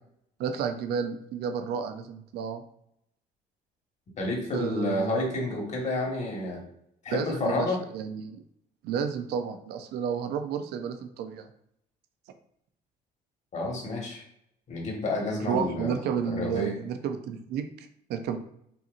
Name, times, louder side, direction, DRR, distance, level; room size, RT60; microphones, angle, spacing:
voice 1, 0.4-2.6 4.5-5.2 7.1-8.4 8.8-11.5 15.4-18.4, right 7 dB, 75° right, 8 dB, 0.5 m, -31 dB
voice 2, 4.2-6.6 7.0-7.8 13.5-14.2 14.7-16.0 16.2-16.8, left 2 dB, 45° left, -1 dB, 1.5 m, -30 dB
5.6 x 2.7 x 2.5 m, 0.73 s
cardioid pair, 110°, 17 cm